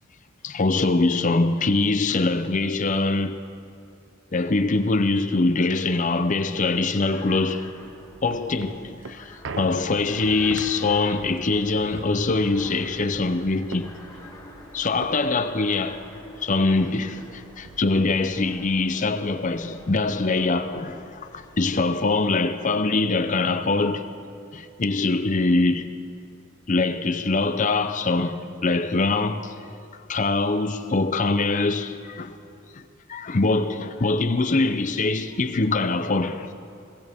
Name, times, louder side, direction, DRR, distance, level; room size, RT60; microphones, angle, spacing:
voice 1, 0.4-3.5 4.3-7.7 8.2-13.9 14.7-16.1 16.4-24.1 24.5-25.9 26.7-29.6 30.1-32.4 32.7-32.8 33.1-36.5, left 3 dB, 35° left, 0.6 m, -23 dB
sound 1, 6.9-22.0, left 1 dB, 20° left, 2.3 m, -46 dB
sound 2, 7.8-16.5 16.9-17.0 17.2-18.6 19.1-19.2, right 4 dB, 60° right, 0.6 m, -42 dB
21.5 x 17.5 x 3.6 m
head